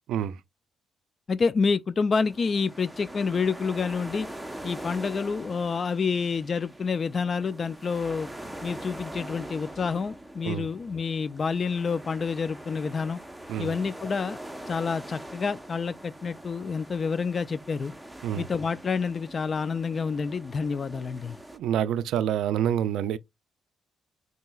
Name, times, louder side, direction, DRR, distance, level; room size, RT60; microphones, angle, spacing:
voice 1, 0.1-0.4 10.4-10.7 13.5-13.8 18.2-18.5 21.5-23.2, right 10 dB, 80° right, 0.3 m, -27 dB
voice 2, 1.3-4.3 4.6-8.3 8.6-13.2 13.6-14.4 14.7-17.9 18.4-21.4, left 5 dB, 40° left, 0.3 m, -28 dB
sound 1, 2.2-21.6, right 1 dB, 5° right, 0.7 m, -43 dB
5.5 x 2.8 x 2.3 m
cardioid pair, 90°, 0 cm